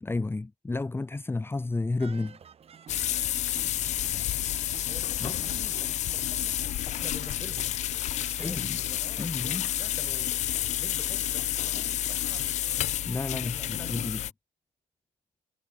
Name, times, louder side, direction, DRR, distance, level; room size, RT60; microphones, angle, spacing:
voice 1, 0.0-2.4 5.2-5.4 8.4-8.8 9.2-9.7 13.0-14.2, left 3 dB, 15° left, 1.5 m, -31 dB
sound 1, 2.0-8.7, right 7 dB, 45° right, 3.7 m, -52 dB
sound 2, 2.9-14.3, left 12 dB, 55° left, 0.4 m, -30 dB
voice 2, 4.9-6.6 6.9-7.8 8.2-12.9 13.4-14.1, right 1 dB, 5° right, 2.4 m, -48 dB
cardioid pair, 95°, 15 cm